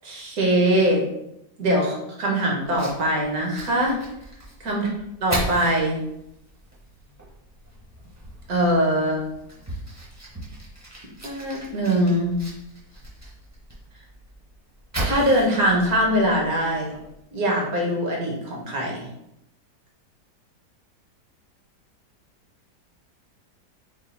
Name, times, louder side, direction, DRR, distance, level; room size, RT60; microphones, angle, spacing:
voice 1, 0.0-1.0 1.6-4.0 4.6-4.9 5.2-6.0 8.5-9.2 11.2-12.3 15.0-16.9 17.3-19.1, right 1 dB, 60° right, -2 dB, 1.4 m, -22 dB
Fire, 2.6-17.2, right 1 dB, 15° right, 0.7 m, -37 dB
4.0 x 2.4 x 4.1 m, 0.81 s
omnidirectional pair, 1.8 m